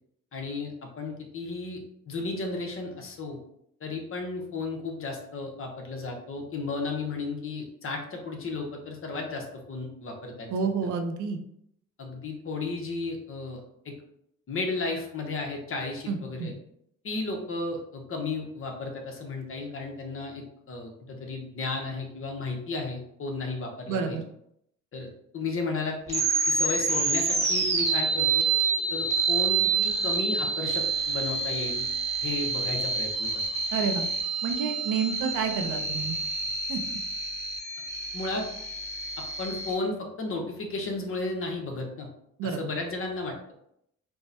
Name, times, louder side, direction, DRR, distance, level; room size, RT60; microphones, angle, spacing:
voice 1, 0.3-1.8 2.1-3.4 3.8-10.5 12.0-13.6 13.8-13.9 14.5-16.5 17.0-24.2 24.9-25.1 25.3-28.4 28.9-31.9 32.2-33.4 38.1-38.5 39.4-42.1 42.4-43.5, left 3 dB, 45° left, 2 dB, 0.9 m, -34 dB
voice 2, 10.5-11.4 16.1-16.5 23.9-24.2 33.7-34.1 34.4-36.2 36.7-36.8 42.4-42.6, right 5 dB, 80° right, 5 dB, 0.6 m, -29 dB
sound 1, 26.1-39.7, right 4 dB, 20° right, 0.9 m, -28 dB
4.6 x 2.1 x 2.7 m, 0.75 s
cardioid pair, 90°, 30 cm